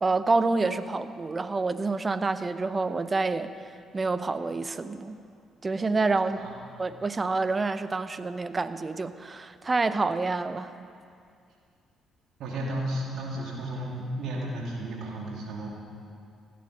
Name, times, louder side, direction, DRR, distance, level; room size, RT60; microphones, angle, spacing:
voice 1, 0.0-3.5 3.9-5.2 5.6-6.4 6.8-10.7, right 3 dB, 30° right, 12 dB, 0.7 m, -27 dB
voice 2, 12.4-15.7, right 1 dB, 70° right, -2 dB, 2.8 m, -33 dB
16.0 x 9.5 x 5.9 m, 2.3 s
hypercardioid pair, 50°, 0 cm